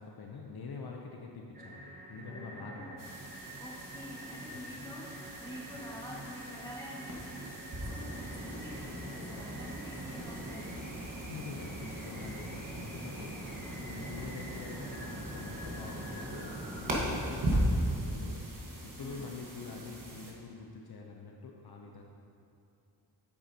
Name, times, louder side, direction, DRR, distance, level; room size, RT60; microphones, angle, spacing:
voice 1, 0.0-3.0 4.5-4.6 11.3-13.4 13.8-16.5 16.8-18.5 18.8-22.0, left 4 dB, 60° left, 0 dB, 0.7 m, -45 dB
sound 1, 1.5-16.9, right 1 dB, 20° right, 0.8 m, -48 dB
voice 2, 2.3-3.1 3.6-10.7 19.0-19.3, equal, 10° left, -6 dB, 1.6 m, -47 dB
sound 2, 3.0-20.3, right 1 dB, 50° right, 1.4 m, -38 dB
8.6 x 8.6 x 2.8 m, 2.6 s
wide cardioid pair, 135°, 43 cm